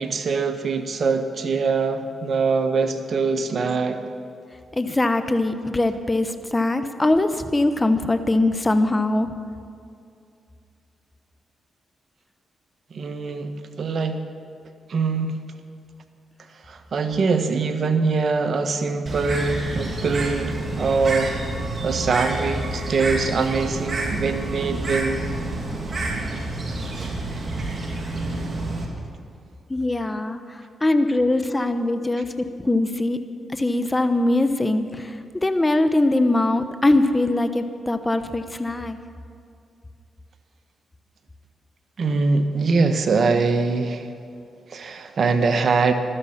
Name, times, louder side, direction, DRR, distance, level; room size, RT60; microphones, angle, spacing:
voice 1, 0.0-4.0 12.9-13.5 13.8-14.2 14.9-15.4 16.6-21.3 21.8-25.2 42.0-44.1 44.7-45.9, right 4 dB, 60° right, 8 dB, 1.3 m, -23 dB
voice 2, 4.8-9.3 29.7-30.4 30.8-32.3 32.6-33.2 33.5-35.1 35.4-39.0, left 2 dB, 20° left, 9 dB, 1.1 m, -21 dB
Bird, 19.1-28.9, right 2 dB, 40° right, 3.0 m, -28 dB
15.5 x 12.5 x 5.8 m, 2.5 s
supercardioid pair, 55°, 0 cm